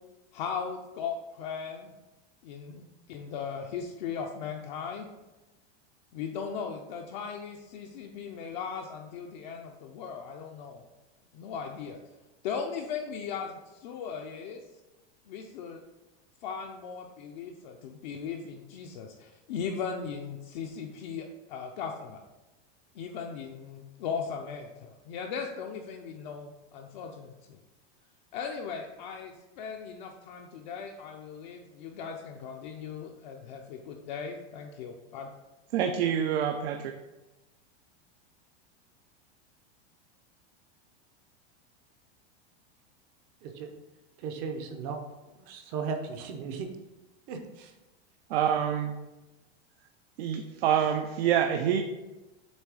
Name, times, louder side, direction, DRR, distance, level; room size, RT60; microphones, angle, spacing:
voice 1, 0.3-1.9 2.4-2.8 3.1-5.1 6.1-10.8 11.3-12.0 12.4-14.6 15.3-15.8 16.4-22.2 22.9-27.6 28.3-35.3, left 6 dB, 45° left, 1 dB, 0.5 m, -38 dB
voice 2, 35.7-36.8 48.3-49.0 50.2-51.8, right 9 dB, 65° right, 5 dB, 0.6 m, -26 dB
voice 3, 44.2-45.0 45.4-46.7 47.3-47.7, right 5 dB, 30° right, 5 dB, 0.6 m, -36 dB
7.3 x 3.2 x 4.8 m, 1.1 s
supercardioid pair, 175°, 32 cm